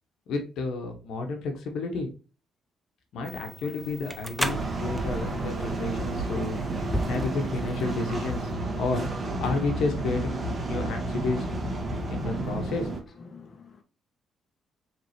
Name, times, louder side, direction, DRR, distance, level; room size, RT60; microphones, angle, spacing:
voice 1, 0.3-2.1 3.1-6.6 7.0-8.5 8.8-9.1 9.4-11.5 12.1-12.9, left 3 dB, 80° left, 1.1 m, -31 dB
sound 1, 3.2-8.5, equal, ahead, 0.6 m, -36 dB
sound 2, 4.4-13.0, right 2 dB, 35° right, 1.3 m, -31 dB
voice 2, 13.1-13.8, left 5 dB, 40° left, 1.1 m, -48 dB
4.8 x 3.4 x 2.8 m
cardioid pair, 75°, 0 cm